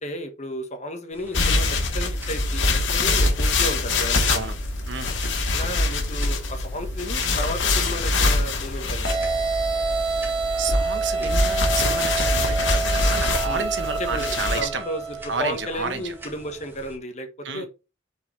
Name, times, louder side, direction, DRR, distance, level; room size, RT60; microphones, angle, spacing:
voice 1, 0.0-4.5 5.5-9.3 11.2-11.4 13.4-13.7 14.0-17.7, equal, 40° left, 1.5 m, -33 dB
sound 1, 1.1-17.0, equal, 10° right, 1.8 m, -44 dB
sound 2, 1.3-14.6, left 2 dB, 90° left, 1.9 m, -24 dB
sound 3, 9.0-16.0, right 4 dB, 30° right, 1.2 m, -27 dB
voice 2, 10.6-14.8 15.3-16.1 17.4-17.7, right 4 dB, 75° right, 1.2 m, -31 dB
8.1 x 4.8 x 3.4 m
head